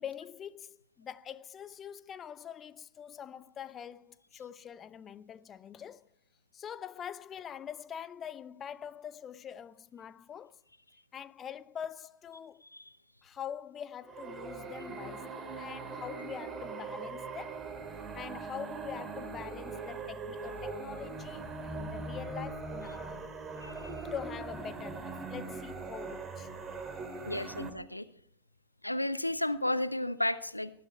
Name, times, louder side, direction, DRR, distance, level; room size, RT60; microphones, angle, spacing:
voice 1, 0.0-6.1 6.5-10.6 11.1-12.6 13.2-17.6 18.1-23.3 24.0-26.6 27.3-27.6, left 8 dB, 25° left, 0.6 m, -44 dB
sound 1, 14.0-27.7, right 3 dB, 20° right, 2.5 m, -41 dB
voice 2, 23.6-24.1 27.2-28.1 28.8-30.7, left 1 dB, 85° left, 0.9 m, -33 dB
19.5 x 12.0 x 4.5 m
figure-of-eight pair, 90°, 0 cm